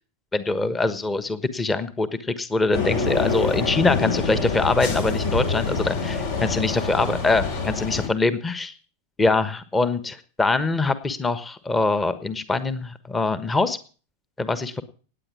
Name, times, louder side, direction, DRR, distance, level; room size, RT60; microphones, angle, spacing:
voice 1, 0.3-8.7 9.2-13.8 14.4-14.8, left 3 dB, 15° left, 13 dB, 1.3 m, -23 dB
sound 1, 2.7-8.1, left 4 dB, 55° left, 3.5 m, -26 dB
18.5 x 9.1 x 6.2 m, 0.40 s
figure-of-eight pair, 90°, 0 cm